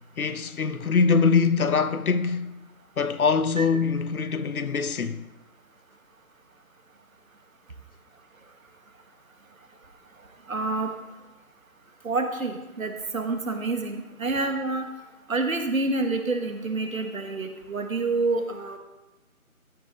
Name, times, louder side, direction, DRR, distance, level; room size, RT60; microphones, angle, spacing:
voice 1, 0.2-2.5 3.0-5.2, left 5 dB, 75° left, 0.8 m, -23 dB
voice 2, 10.5-10.9 12.0-14.9 15.3-18.8, right 3 dB, 65° right, 1.6 m, -28 dB
14.5 x 5.9 x 4.0 m
figure-of-eight pair, 165°, 43 cm